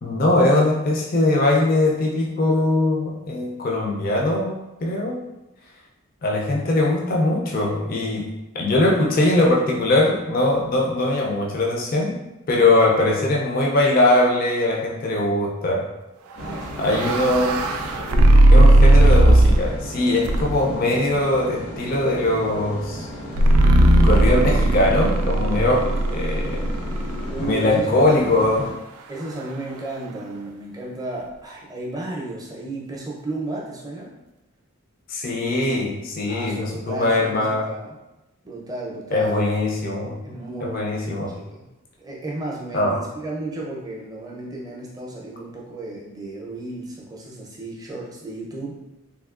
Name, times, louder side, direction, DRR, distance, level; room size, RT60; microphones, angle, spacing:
voice 1, 0.0-5.2 6.2-12.2 12.5-15.9 16.8-17.7 18.5-23.1 24.0-26.6 27.4-28.7 35.1-37.7 39.1-40.2 40.6-41.3 42.7-43.0, left 2 dB, 40° left, -2 dB, 0.4 m, -21 dB
sound 1, 16.4-28.7, equal, 90° left, 1.2 m, -35 dB
voice 2, 16.4-17.2 27.3-28.1 29.1-34.1 36.3-38.0 38.4-39.4 40.2-41.6 42.0-48.7, right 2 dB, 15° right, -4 dB, 0.5 m, -34 dB
sound 2, 16.5-19.8 20.2-20.8 23.4-27.5, right 1 dB, 80° right, 0.3 m, -16 dB
3.5 x 2.7 x 2.4 m, 0.97 s
head